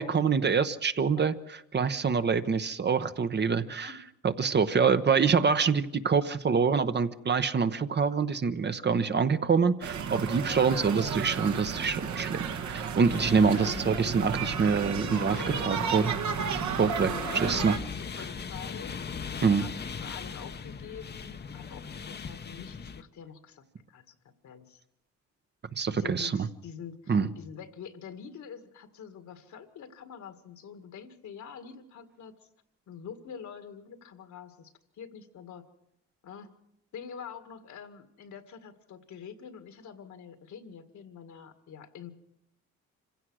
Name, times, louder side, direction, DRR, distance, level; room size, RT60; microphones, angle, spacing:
voice 1, 0.0-1.3 1.7-3.9 4.2-16.0 16.5-17.7 19.4-19.6 25.8-26.5 27.1-27.3, right 5 dB, 35° right, 11 dB, 0.9 m, -26 dB
sound 1, 9.8-17.8, right 7 dB, 70° right, 1.7 m, -33 dB
voice 2, 10.5-11.1 13.4-13.8 15.5-16.2 16.9-18.9 19.6-24.1 24.4-24.8 25.9-32.4 32.9-35.7 36.2-36.5 36.9-42.1, left 7 dB, 70° left, 9 dB, 2.0 m, -46 dB
sound 2, 13.1-23.0, left 6 dB, 35° left, 0.9 m, -39 dB
26.0 x 16.0 x 6.3 m, 0.79 s
cardioid pair, 90°, 30 cm